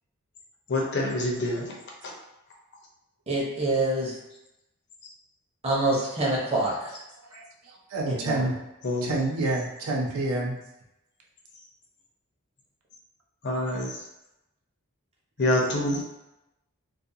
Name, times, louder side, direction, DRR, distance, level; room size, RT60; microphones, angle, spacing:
voice 1, 0.7-1.7 8.8-9.1 13.4-14.0 15.4-16.0, left 1 dB, 50° left, -1 dB, 0.6 m, -26 dB
voice 2, 3.3-4.1 5.6-7.0 8.1-8.5, right 2 dB, 30° right, -5 dB, 0.7 m, -26 dB
voice 3, 7.3-8.5 9.0-10.6, right 2 dB, 75° right, -1 dB, 0.5 m, -28 dB
2.4 x 2.2 x 2.7 m, 0.91 s
head